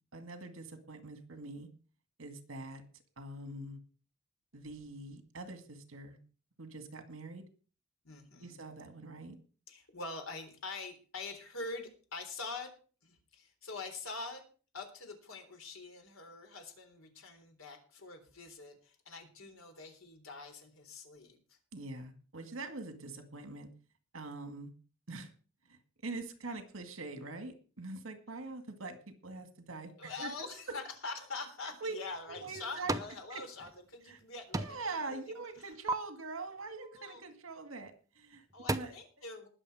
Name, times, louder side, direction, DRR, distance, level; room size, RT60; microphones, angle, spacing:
voice 1, 0.1-1.7 2.2-2.8 3.2-3.8 4.5-6.2 6.6-7.4 8.4-9.4 21.7-23.7 24.1-24.7 25.1-25.3 25.7-30.8 31.8-32.0 32.3-33.0 33.3-33.4 34.1-34.2 34.6-38.5 38.7-38.9, right 3 dB, 75° right, 8 dB, 2.0 m, -44 dB
voice 2, 8.0-8.6 9.7-12.7 13.0-14.4 14.7-21.6 30.0-34.8 35.1-35.2 36.8-37.2 38.5-39.5, left 3 dB, 85° left, 5 dB, 3.7 m, -44 dB
sound 1, 32.1-33.2 33.5-34.2 34.5-35.0 35.3-35.9 37.7-37.9 38.3-38.8, right 2 dB, 15° right, 0.7 m, -36 dB
20.0 x 7.1 x 4.9 m, 0.39 s
head